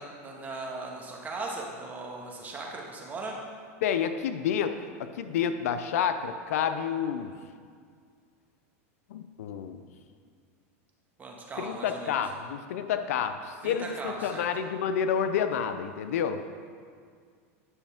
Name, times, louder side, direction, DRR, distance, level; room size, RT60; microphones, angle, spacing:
voice 1, 0.0-3.3 11.2-12.1 13.6-14.5, right 3 dB, 20° right, -1 dB, 1.5 m, -38 dB
voice 2, 3.8-4.7 5.0-7.3 9.1-9.9 11.6-16.4, left 8 dB, 80° left, 9 dB, 0.5 m, -29 dB
9.8 x 6.4 x 3.5 m, 2.1 s
supercardioid pair, 120°, 8 cm